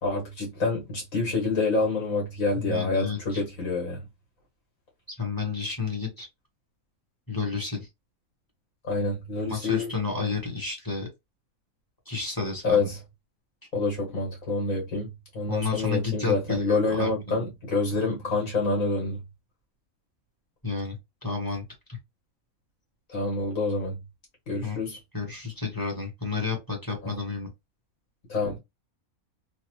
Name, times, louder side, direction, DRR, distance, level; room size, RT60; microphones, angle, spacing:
voice 1, 0.0-4.0 8.8-9.9 12.6-13.0 13.7-15.1 15.3-19.2 23.1-24.0 24.5-25.0 27.0-27.1 28.3-28.6, left 3 dB, 65° left, 1.6 m, -27 dB
voice 2, 2.5-3.4 5.2-6.3 7.3-7.9 9.5-11.1 12.1-12.9 15.5-17.4 20.6-21.6 24.6-24.8 25.1-27.5, left 4 dB, 15° left, 0.9 m, -31 dB
3.2 x 2.0 x 3.0 m
omnidirectional pair, 1.5 m